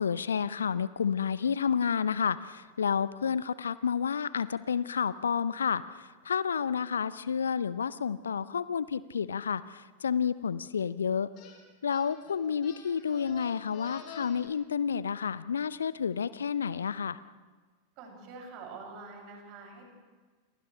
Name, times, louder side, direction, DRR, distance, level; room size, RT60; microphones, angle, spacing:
voice 1, 0.0-5.8 6.3-11.3 11.8-17.2, left 7 dB, 70° left, 17 dB, 0.6 m, -30 dB
sound 1, 11.4-11.6 11.9-14.5, left 6 dB, 40° left, 5.1 m, -48 dB
voice 2, 18.0-19.9, right 4 dB, 40° right, 0 dB, 6.9 m, -45 dB
29.5 x 28.0 x 3.3 m, 1.4 s
figure-of-eight pair, 90°, 0 cm